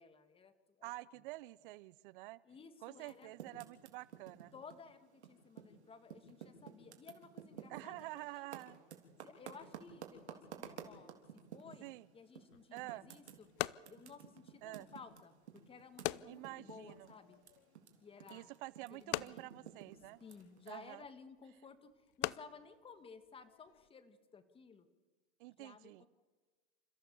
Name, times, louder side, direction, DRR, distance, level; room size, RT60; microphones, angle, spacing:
voice 1, 0.0-1.2 2.4-3.3 4.5-8.7 9.2-11.1 11.5-13.5 13.9-17.4 18.0-18.5 18.9-19.7 20.2-24.9 25.6-26.1, left 5 dB, 15° left, 11 dB, 1.7 m, -56 dB
voice 2, 0.8-2.4 2.8-4.5 7.7-8.8 11.8-12.1 12.7-13.0 14.6-14.9 16.2-17.1 18.3-20.2 20.7-21.0 25.4-26.1, right 20 dB, 50° right, 21 dB, 0.6 m, -48 dB
Typing, 3.0-5.8 6.0-11.9 12.4-12.5 12.8-17.9 18.2-20.7, right 9 dB, 90° right, 3.3 m, -52 dB
sound 1, 12.5-23.9, left 19 dB, 50° left, 0.6 m, -46 dB
28.5 x 14.5 x 7.1 m, 1.4 s
hypercardioid pair, 130°, 33 cm